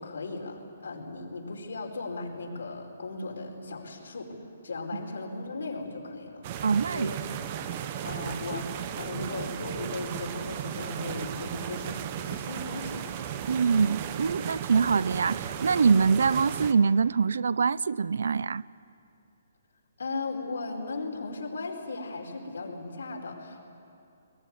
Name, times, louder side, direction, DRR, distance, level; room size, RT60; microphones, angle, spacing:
voice 1, 0.0-4.3 4.6-7.2 7.6-12.0 12.3-13.0 20.0-23.7, left 3 dB, 90° left, 4.9 m, -37 dB
sound 1, 6.4-16.7, right 9 dB, 35° right, 1.0 m, -35 dB
voice 2, 6.6-7.1 13.5-18.6, right 5 dB, 75° right, 0.5 m, -24 dB
22.0 x 20.5 x 9.7 m
hypercardioid pair, 160°, 0 cm